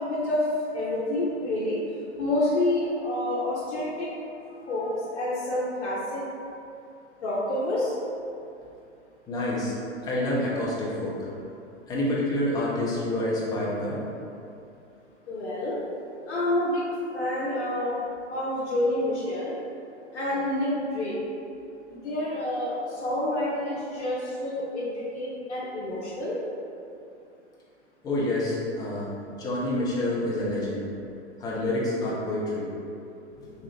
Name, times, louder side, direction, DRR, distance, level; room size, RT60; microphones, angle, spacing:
voice 1, 0.0-1.8 2.2-4.1 4.5-6.3 7.2-7.9 15.3-15.8 16.3-18.0 18.3-19.5 20.1-21.2 21.9-26.4, left 1 dB, 70° left, -7 dB, 0.7 m, -28 dB
voice 2, 9.3-9.7 10.0-11.2 11.9-14.0 28.0-29.0 29.3-30.8 31.4-32.7 33.4-33.5, left 1 dB, 10° left, -6 dB, 0.4 m, -28 dB
3.1 x 2.4 x 2.7 m, 2.6 s
figure-of-eight pair, 100°, 35 cm